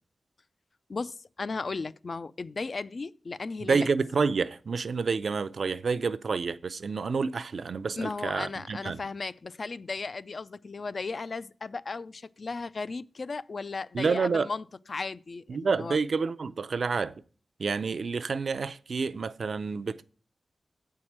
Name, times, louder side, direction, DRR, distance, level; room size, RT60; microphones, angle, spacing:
voice 1, 0.9-3.9 8.0-16.0, left 4 dB, 55° left, 0.3 m, -36 dB
voice 2, 3.6-9.0 13.9-14.5 15.5-17.1 17.6-20.0, right 5 dB, 70° right, 0.5 m, -29 dB
8.6 x 4.7 x 7.2 m
wide cardioid pair, 115°, 0 cm